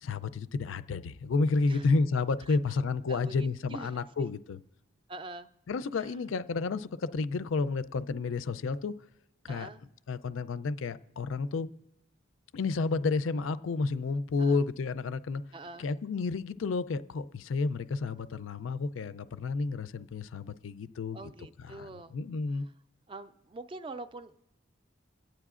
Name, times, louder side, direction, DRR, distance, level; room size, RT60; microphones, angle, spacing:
voice 1, 0.0-4.6 5.7-8.9 9.4-9.7 10.1-11.7 12.5-15.4 15.8-21.2 21.6-21.9 22.1-22.7, left 4 dB, 80° left, 0.4 m, -31 dB
voice 2, 2.5-2.8 3.1-4.0 5.1-5.5 5.9-6.1 9.5-9.8 14.4-14.6 15.5-15.9 21.1-22.1 23.1-24.3, right 2 dB, 25° right, 0.3 m, -44 dB
26.0 x 9.0 x 2.4 m
head